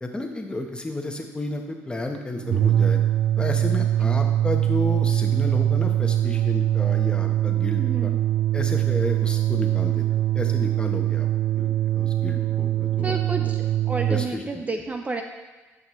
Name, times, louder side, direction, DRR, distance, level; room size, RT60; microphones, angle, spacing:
voice 1, 0.0-3.0 3.4-8.1 8.5-11.3 11.5-13.5 14.1-14.8, left 2 dB, 15° left, 3 dB, 1.1 m, -32 dB
sound 1, 2.4-14.3, right 12 dB, 70° right, 0.6 m, -22 dB
voice 2, 7.8-8.2 13.0-15.2, right 3 dB, 25° right, 5 dB, 0.6 m, -31 dB
11.5 x 5.3 x 3.1 m, 1.3 s
cardioid pair, 80°, 6 cm